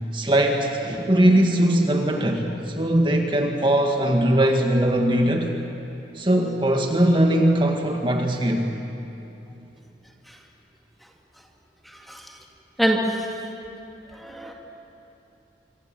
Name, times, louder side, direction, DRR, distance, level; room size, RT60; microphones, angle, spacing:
voice 1, 0.1-5.5 6.1-8.7, right 1 dB, 25° right, 3 dB, 1.7 m, -20 dB
voice 2, 11.8-12.4 12.8-13.3 14.1-14.5, equal, ahead, 1 dB, 1.9 m, -26 dB
26.5 x 24.5 x 7.7 m, 2.9 s
head